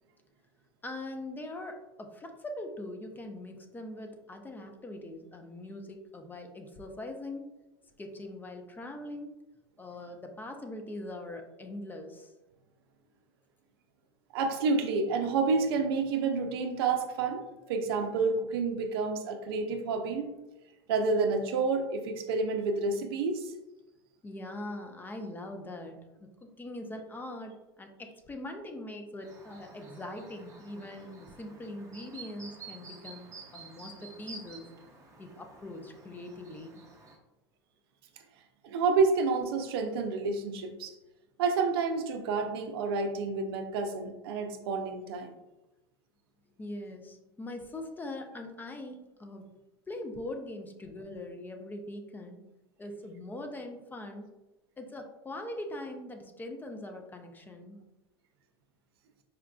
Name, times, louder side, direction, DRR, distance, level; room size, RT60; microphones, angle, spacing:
voice 1, 0.8-7.5 8.0-9.3 9.8-12.3 24.2-34.6 35.2-36.8 46.6-49.5 49.9-52.4 52.8-54.3 54.8-57.8, left 1 dB, 15° left, 4 dB, 0.4 m, -42 dB
voice 2, 14.3-17.4 17.7-20.3 20.9-23.5 38.6-41.0 41.4-45.3, right 4 dB, 70° right, 5 dB, 0.5 m, -29 dB
Chirp tweet, 29.2-37.2, right 3 dB, 25° right, 0.8 m, -50 dB
4.9 x 2.3 x 2.2 m, 1.0 s
hypercardioid pair, 95°, 13 cm